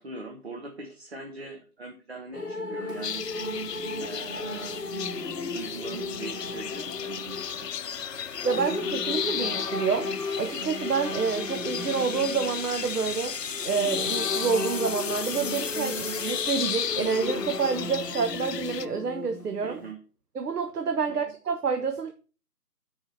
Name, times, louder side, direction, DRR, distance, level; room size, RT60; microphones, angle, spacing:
voice 1, 0.0-3.2 4.0-4.9 5.4-7.8 19.6-20.0 21.1-21.2, right 3 dB, 40° right, 1.0 m, -41 dB
sound 1, 2.3-19.9, left 3 dB, ahead, 1.7 m, -35 dB
sound 2, 3.0-18.9, left 9 dB, 85° left, 0.6 m, -35 dB
sound 3, 3.4-18.8, left 5 dB, 55° left, 0.8 m, -39 dB
voice 2, 8.4-10.1 10.4-19.8 20.3-22.1, right 5 dB, 75° right, 1.0 m, -28 dB
6.5 x 4.8 x 5.4 m
figure-of-eight pair, 165°, 47 cm